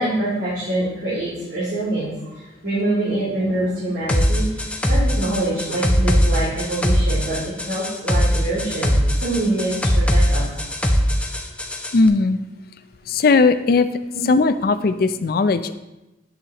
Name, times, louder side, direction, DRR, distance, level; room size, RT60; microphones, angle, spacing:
voice 1, 0.0-4.4 4.9-9.7 10.1-10.4 14.1-14.2, right 1 dB, 75° right, -11 dB, 3.1 m, -25 dB
sound 1, 4.1-12.0, equal, 5° left, 0.6 m, -20 dB
voice 2, 11.9-12.4 13.1-13.9 14.2-15.7, left 3 dB, 55° left, 11 dB, 0.4 m, -17 dB
10.5 x 6.4 x 2.9 m, 0.99 s
head